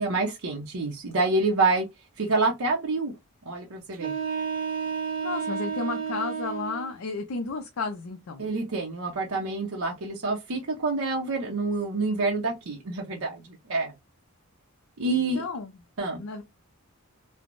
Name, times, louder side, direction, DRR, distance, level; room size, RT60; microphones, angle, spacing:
voice 1, 0.0-1.9 2.2-3.1 3.5-4.1 8.4-13.9 15.0-15.4 16.0-16.2, right 3 dB, 80° right, 0.7 m, -27 dB
sound 1, 3.9-6.9, right 6 dB, 40° right, 0.6 m, -31 dB
voice 2, 5.2-8.5 15.1-15.8 16.2-16.4, left 3 dB, 70° left, 0.5 m, -33 dB
3.3 x 2.0 x 2.5 m
head